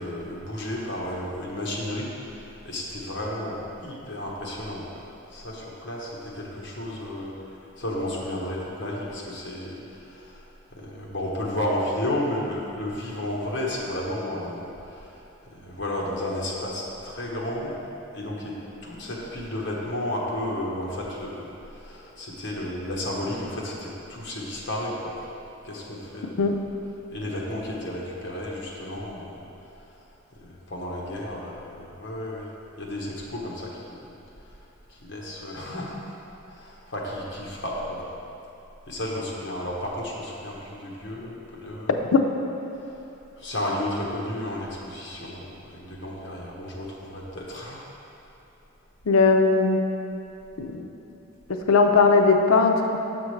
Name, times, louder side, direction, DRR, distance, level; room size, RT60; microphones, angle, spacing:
voice 1, 0.0-2.1 2.6-10.4 10.7-15.1 15.5-17.7 18.1-18.5 18.8-21.5 21.7-25.2 25.6-26.4 27.1-29.4 30.4-32.5 32.8-34.0 35.0-36.1 36.5-38.0 38.9-41.3 41.6-42.0 43.4-45.5 45.7-47.9, left 1 dB, 60° left, -3 dB, 1.1 m, -32 dB
voice 2, 49.1-49.8 50.6-50.9 51.5-53.0, left 4 dB, 85° left, 4 dB, 0.5 m, -19 dB
6.8 x 6.0 x 3.2 m, 3.0 s
head